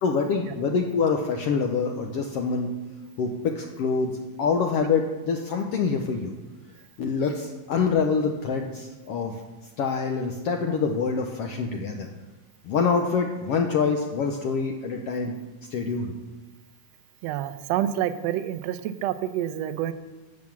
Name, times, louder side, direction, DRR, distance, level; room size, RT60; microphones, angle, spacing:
voice 1, 0.0-2.7 3.2-6.3 7.0-9.4 9.8-12.1 12.6-15.3 15.7-16.1, left 5 dB, 70° left, 3 dB, 1.5 m, -25 dB
voice 2, 17.2-19.9, right 11 dB, 80° right, 11 dB, 1.6 m, -28 dB
11.0 x 7.2 x 7.2 m, 1.2 s
omnidirectional pair, 3.5 m